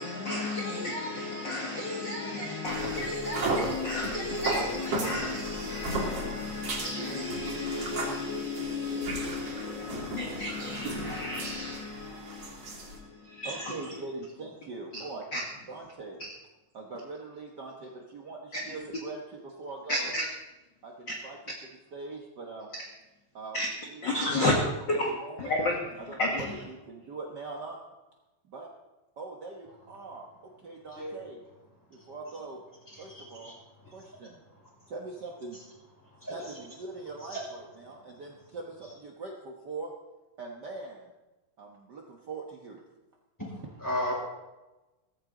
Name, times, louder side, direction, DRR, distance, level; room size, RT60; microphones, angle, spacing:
voice 1, 0.0-13.7 14.9-15.0 15.3-15.4 18.5-18.6 19.9-20.3 23.5-23.7 24.0-24.5 24.9-25.1 25.4-25.8 26.2-26.6, left 2 dB, 45° left, 1.7 m, -32 dB
sound 1, 2.7-13.0, right 2 dB, 45° right, 3.5 m, -35 dB
voice 2, 13.2-15.4 15.7-16.2 16.7-20.1 20.8-21.4 21.9-22.7 23.3-23.6 23.9-24.0 24.3-24.4 25.2-25.5 26.1-27.8 28.5-28.7 29.2-31.4 31.9-32.6 33.0-33.5 33.9-34.4 34.9-35.6 36.3-39.9 40.4-41.1 41.6-42.8, right 3 dB, 65° right, 1.0 m, -42 dB
voice 3, 32.9-33.6 33.8-34.1 34.5-34.9 35.5-35.6 36.0-36.6 37.3-37.4 38.1-38.2 43.4-44.2, left 1 dB, 5° left, 5.5 m, -37 dB
17.0 x 14.5 x 3.9 m
omnidirectional pair, 3.9 m